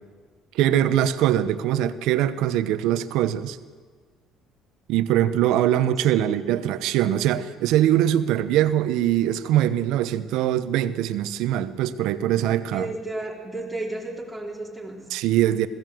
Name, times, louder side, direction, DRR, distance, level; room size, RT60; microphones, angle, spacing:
voice 1, 0.5-3.6 4.9-12.9 15.1-15.7, right 12 dB, 80° right, 12 dB, 1.0 m, -22 dB
voice 2, 12.7-15.0, right 2 dB, ahead, -3 dB, 4.1 m, -33 dB
21.0 x 16.0 x 7.8 m, 1.5 s
cardioid pair, 105°, 0 cm